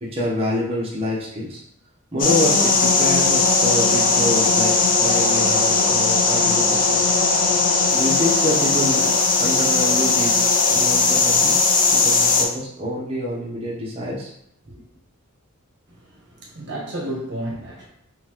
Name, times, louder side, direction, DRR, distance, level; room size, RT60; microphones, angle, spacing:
voice 1, 0.0-1.6 2.1-7.0 7.9-9.1 9.4-11.7 11.9-14.3, left 1 dB, 30° right, -6 dB, 1.0 m, -26 dB
sound 1, 2.2-12.4, left 4 dB, 40° left, 0.6 m, -18 dB
voice 2, 15.9-17.9, right 1 dB, 60° right, -3 dB, 1.2 m, -32 dB
5.4 x 2.5 x 3.0 m, 0.73 s
head